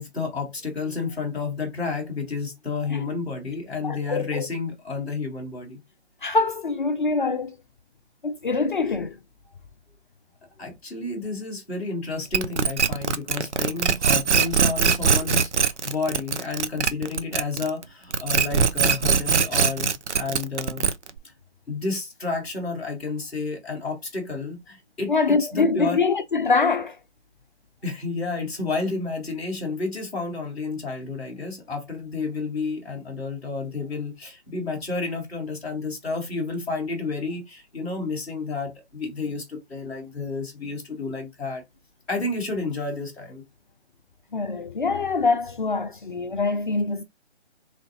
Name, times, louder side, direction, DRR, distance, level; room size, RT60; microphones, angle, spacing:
voice 1, 0.0-5.8 10.6-20.9 21.7-26.0 27.8-41.6 42.1-43.4, left 4 dB, ahead, 0.7 m, -31 dB
voice 2, 3.8-4.5 6.2-7.6 8.2-9.1 25.1-27.0 44.3-47.0, left 4 dB, 45° left, 0.5 m, -24 dB
sound 1, 12.3-17.8 18.1-21.2, right 6 dB, 80° right, 0.6 m, -21 dB
3.8 x 3.2 x 2.8 m
figure-of-eight pair, 155°, 34 cm